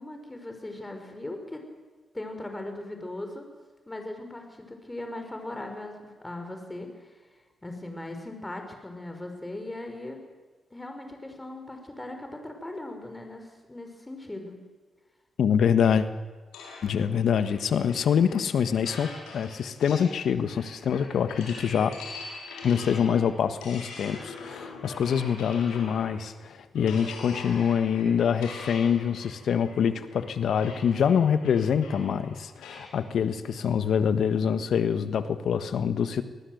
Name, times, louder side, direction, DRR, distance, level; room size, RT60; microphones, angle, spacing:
voice 1, 0.0-1.6 2.1-3.4 3.9-7.2 7.6-10.2 10.7-14.6, left 1 dB, 20° left, 5 dB, 5.2 m, -39 dB
voice 2, 15.4-16.1 16.8-22.0 22.6-36.2, left 7 dB, 70° left, 11 dB, 1.4 m, -25 dB
sound 1, 16.5-26.3 26.8-33.0, left 3 dB, 85° left, 5.1 m, -43 dB
25.5 x 19.5 x 8.1 m, 1.3 s
hypercardioid pair, 45°, 0 cm